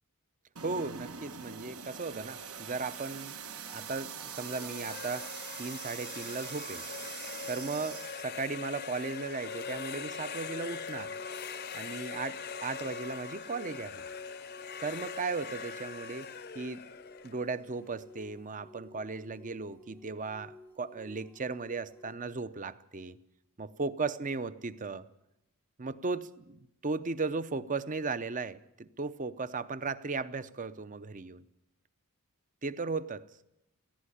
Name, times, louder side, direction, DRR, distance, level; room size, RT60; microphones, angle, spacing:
voice 1, 0.6-3.3 3.7-6.9 7.5-11.1 11.7-14.0 14.8-16.3 16.5-16.9 17.2-23.2 23.6-25.1 25.8-31.4 32.6-33.3, right 4 dB, 35° right, 0.7 m, -36 dB
sound 1, 0.6-8.2, right 7 dB, 75° right, 1.5 m, -43 dB
sound 2, 4.2-18.1, left 6 dB, 45° left, 0.7 m, -42 dB
sound 3, 9.3-22.2, left 1 dB, 10° left, 0.7 m, -54 dB
18.0 x 15.5 x 9.9 m
head